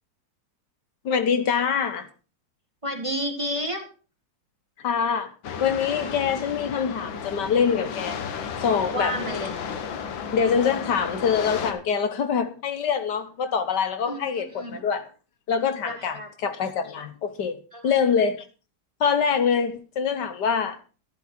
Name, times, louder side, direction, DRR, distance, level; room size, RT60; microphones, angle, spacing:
voice 1, 1.0-2.1 4.8-5.3 5.6-8.2 8.6-9.2 10.3-15.0 15.5-18.4 19.0-20.8, left 6 dB, 65° left, 1.6 m, -24 dB
voice 2, 2.8-3.9 8.9-9.5 14.0-14.8 15.8-16.3 17.7-17.9, equal, 20° right, 1.6 m, -31 dB
sound 1, 5.4-11.7, left 6 dB, 90° left, 2.0 m, -33 dB
12.0 x 11.0 x 4.3 m
omnidirectional pair, 2.0 m